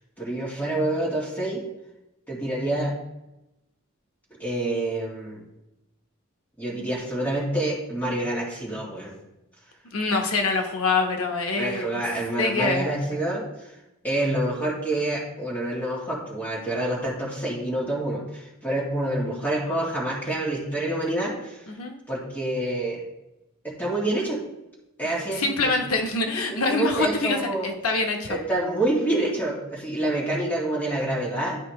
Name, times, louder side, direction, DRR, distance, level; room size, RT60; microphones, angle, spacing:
voice 1, 0.2-1.6 2.3-2.9 4.4-5.4 6.6-9.1 11.6-13.7 14.0-21.6 22.1-23.0 23.6-24.4 25.0-25.7 26.5-27.7 28.3-31.6, right 1 dB, 10° left, -5 dB, 2.2 m, -27 dB
voice 2, 9.9-11.8 12.4-12.9 21.7-21.9 25.4-28.4, left 3 dB, 85° left, 3 dB, 1.0 m, -25 dB
11.5 x 4.8 x 3.1 m, 0.91 s
head